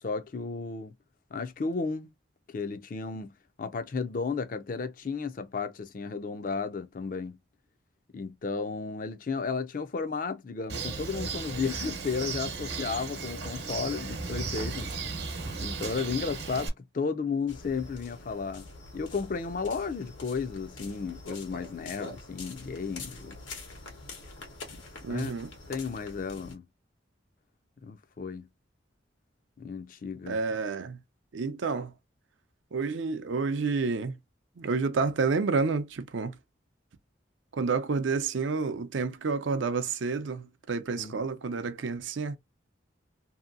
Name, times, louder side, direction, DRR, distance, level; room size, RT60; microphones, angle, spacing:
voice 1, 0.0-0.9 1.3-2.1 2.5-3.3 3.6-7.4 8.1-14.9 15.6-18.6 18.9-23.4 25.1-25.3 25.7-26.6 27.8-28.5 29.6-30.4 41.0-41.1, left 5 dB, 45° left, 0.4 m, -33 dB
Bird, 10.7-16.7, right 4 dB, 60° right, 0.9 m, -35 dB
sound 1, 17.5-26.5, left 3 dB, 90° left, 1.1 m, -45 dB
voice 2, 25.0-25.5 30.3-31.0 31.3-31.9 32.7-34.2 34.6-36.4 37.5-42.4, right 4 dB, 75° right, 0.5 m, -29 dB
2.8 x 2.6 x 2.5 m
head